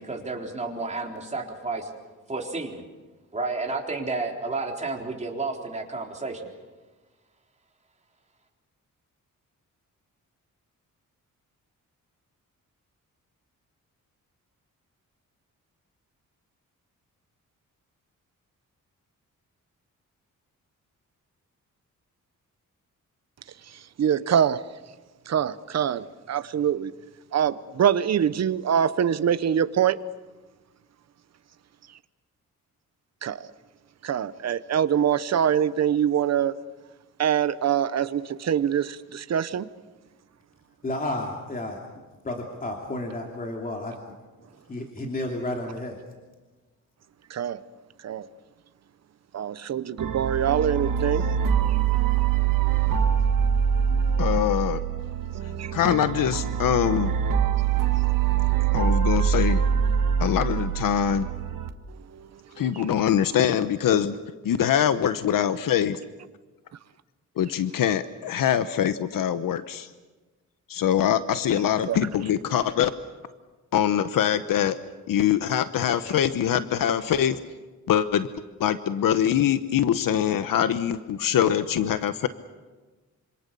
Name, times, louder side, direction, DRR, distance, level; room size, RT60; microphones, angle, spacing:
voice 1, 0.0-1.9 2.3-2.8 3.3-6.5, right 3 dB, 20° right, 3.8 m, -31 dB
voice 2, 24.0-24.6 25.3-26.9 27.3-30.0 33.2-33.5 34.0-36.5 37.2-39.7 47.3-47.6 48.0-48.3 49.3-51.3 52.7-52.8 55.6-55.7 62.1-62.3 62.6-62.8 71.9-72.0, right 9 dB, 55° right, 1.0 m, -24 dB
voice 3, 40.8-41.8 42.2-44.0 44.7-46.0, left 1 dB, 25° left, 2.8 m, -31 dB
sound 1, 50.0-61.7, right 8 dB, 80° right, 1.6 m, -24 dB
voice 4, 54.2-54.8 55.7-57.1 58.7-59.6 60.2-61.3 62.6-64.1 64.4-66.0 67.4-69.9 70.7-72.9 73.7-74.8 75.1-77.4 77.9-78.3 78.6-82.3, left 9 dB, 90° left, 1.0 m, -23 dB
26.5 x 26.5 x 6.9 m
wide cardioid pair, 145°, 32 cm